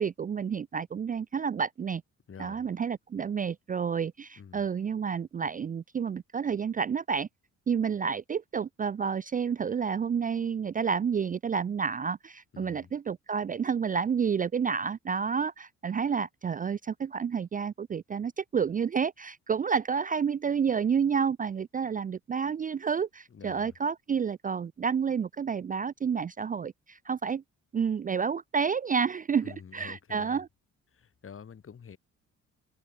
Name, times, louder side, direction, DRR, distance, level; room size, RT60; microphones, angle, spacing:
voice 1, 0.0-2.0 2.4-7.3 7.7-27.4 27.7-30.5, right 6 dB, 30° right, 0.4 m, -30 dB
voice 2, 2.3-2.7 4.4-4.7 12.5-12.9 23.3-23.8 29.4-30.4 30.9-32.0, left 7 dB, 45° left, 4.7 m, -48 dB
cardioid pair, 90°, 30 cm